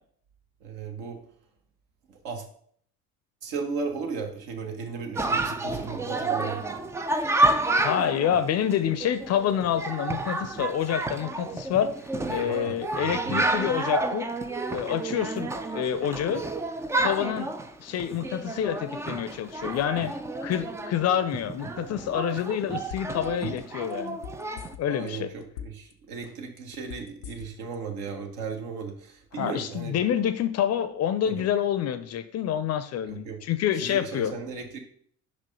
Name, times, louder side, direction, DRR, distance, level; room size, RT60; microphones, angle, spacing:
voice 1, 0.6-1.2 2.1-2.4 3.4-6.7 12.4-13.5 24.9-30.0 31.2-31.5 33.0-33.4 33.7-34.8, right 5 dB, 60° right, 3 dB, 1.5 m, -36 dB
Chatter, 5.1-24.7, right 2 dB, 5° right, 0.3 m, -30 dB
voice 2, 7.8-11.9 12.3-14.3 14.7-16.4 17.0-17.5 17.8-20.1 20.4-24.2 24.8-25.3 29.4-34.3, left 9 dB, 35° left, 12 dB, 0.6 m, -27 dB
sound 1, 22.9-23.3 23.6-25.1 25.4-25.9 26.2-27.8 28.1-28.2, left 10 dB, 80° left, 0.6 m, -41 dB
5.3 x 5.1 x 5.4 m, 0.62 s
figure-of-eight pair, 60°, 44 cm